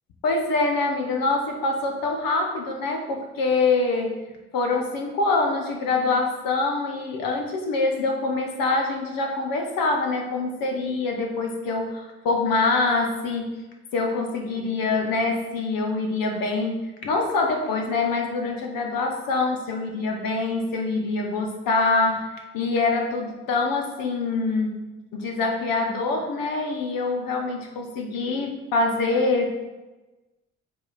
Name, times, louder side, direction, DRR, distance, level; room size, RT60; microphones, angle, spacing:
voice 1, 0.2-4.2 4.5-13.7 13.9-22.3 22.5-29.7, left 3 dB, 75° left, 2 dB, 1.3 m, -25 dB
7.1 x 4.8 x 4.3 m, 1.1 s
hypercardioid pair, 45°, 35 cm